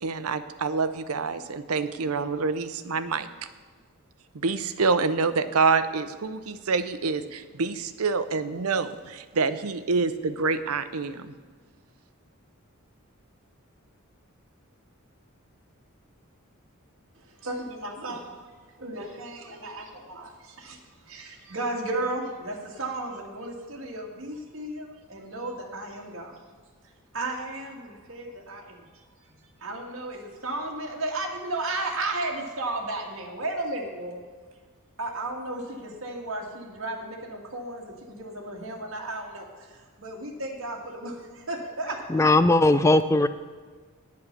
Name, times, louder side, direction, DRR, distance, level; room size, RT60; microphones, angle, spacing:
voice 1, 0.0-3.3 4.3-11.3, right 4 dB, 85° right, 11 dB, 0.7 m, -27 dB
voice 2, 17.2-20.8 21.1-26.4 27.1-28.9 29.3-34.2 35.0-42.2, right 2 dB, 65° right, 0 dB, 1.9 m, -34 dB
voice 3, 42.1-43.3, left 2 dB, 15° left, 11 dB, 0.4 m, -19 dB
9.3 x 8.6 x 6.6 m, 1.5 s
head